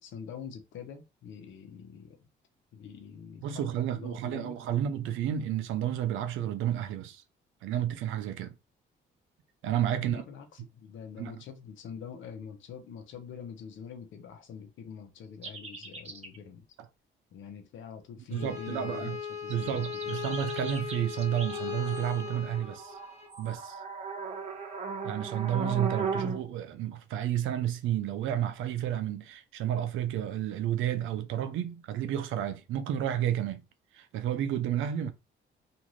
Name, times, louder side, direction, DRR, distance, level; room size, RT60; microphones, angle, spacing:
voice 1, 0.0-2.3 2.7-4.6 9.9-16.7 17.3-20.3, left 7 dB, 75° left, 0.7 m, -45 dB
voice 2, 3.4-7.2 7.6-8.5 9.6-10.2 11.2-11.3 18.3-19.2 19.5-23.0 23.4-23.8 25.0-33.6 33.9-35.1, right 10 dB, 85° right, 0.5 m, -31 dB
sound 1, 15.4-16.4 19.5-26.4, right 5 dB, 30° right, 0.8 m, -37 dB
Bowed string instrument, 18.3-23.3, left 7 dB, 35° left, 1.3 m, -38 dB
2.5 x 2.5 x 3.0 m
cardioid pair, 90°, 20 cm